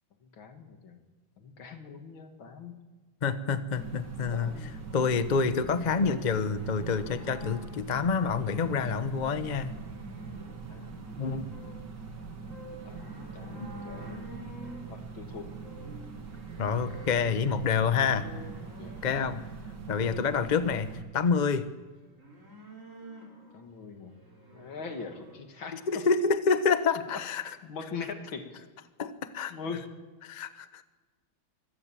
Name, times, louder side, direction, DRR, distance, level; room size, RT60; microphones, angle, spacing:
voice 1, 0.4-1.0 1.4-2.7 4.3-4.8 10.7-11.1 12.8-14.3 14.9-15.5 18.6-18.9 20.0-20.1 23.5-24.2 24.5-26.1 27.1-28.6 29.5-29.9, left 5 dB, 80° left, 5 dB, 2.9 m, -42 dB
voice 2, 3.2-9.7 11.2-11.5 13.6-13.7 16.6-18.3 19.0-19.4 19.9-21.7 25.7-27.6 29.0-29.6 30.2-30.8, left 5 dB, 40° left, 11 dB, 0.7 m, -28 dB
sound 1, 3.7-21.0, right 5 dB, 60° right, 2.6 m, -43 dB
sound 2, 6.3-19.5 22.0-25.4, equal, 40° right, 3.6 m, -49 dB
24.5 x 16.5 x 7.5 m, 1.2 s
omnidirectional pair, 2.2 m